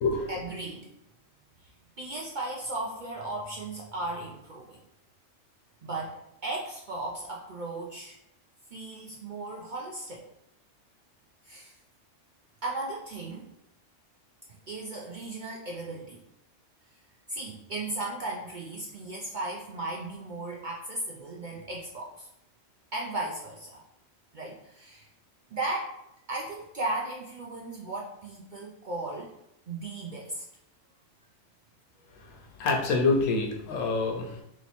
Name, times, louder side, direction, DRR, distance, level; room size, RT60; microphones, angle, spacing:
voice 1, 0.3-0.9 1.6-1.7 2.0-4.8 5.8-8.2 8.7-10.3 11.4-11.8 12.6-13.5 14.7-16.2 17.3-22.3 22.9-23.8 24.3-25.1 25.5-26.0 26.3-29.4 29.7-30.4, right 2 dB, 60° right, -2 dB, 0.5 m, -36 dB
voice 2, 32.6-34.4, left 3 dB, 90° left, 2 dB, 1.1 m, -26 dB
3.0 x 3.0 x 4.1 m, 0.80 s
omnidirectional pair, 1.3 m